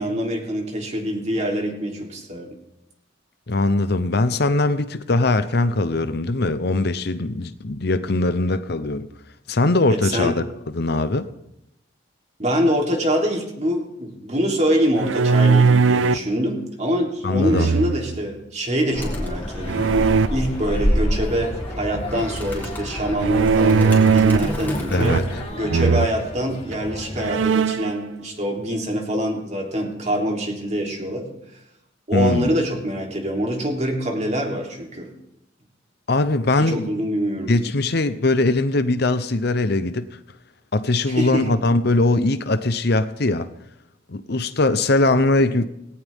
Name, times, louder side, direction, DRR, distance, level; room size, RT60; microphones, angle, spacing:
voice 1, 0.0-2.5 10.0-10.3 12.4-25.2 25.5-31.3 32.1-35.1 36.6-37.5 41.1-41.5, equal, 35° right, 3.4 m, -25 dB
voice 2, 3.5-9.1 9.5-10.4 10.7-11.3 17.2-17.7 24.9-25.2 32.1-32.5 36.1-36.9 37.5-40.1 40.7-43.5 44.1-45.6, left 2 dB, 55° left, 0.8 m, -21 dB
sound 1, 15.0-16.3 17.5-18.2 19.7-20.3 23.2-24.6 25.0-25.4 25.7-26.1 26.7-26.8 27.2-27.9, right 5 dB, 85° right, 0.5 m, -18 dB
sound 2, 18.9-27.5, left 1 dB, 30° left, 2.6 m, -34 dB
Animal, 18.9-25.4, equal, 10° left, 3.8 m, -28 dB
19.0 x 17.5 x 3.7 m
head